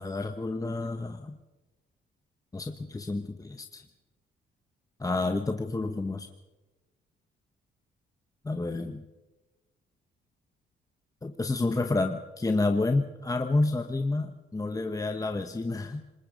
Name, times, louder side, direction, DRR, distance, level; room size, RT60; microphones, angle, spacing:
voice 1, 0.0-1.4 2.5-3.8 5.0-6.3 8.4-9.0 11.2-16.0, left 2 dB, 15° left, 6 dB, 1.2 m, -29 dB
27.0 x 20.5 x 5.3 m, 1.1 s
cardioid pair, 90°, 20 cm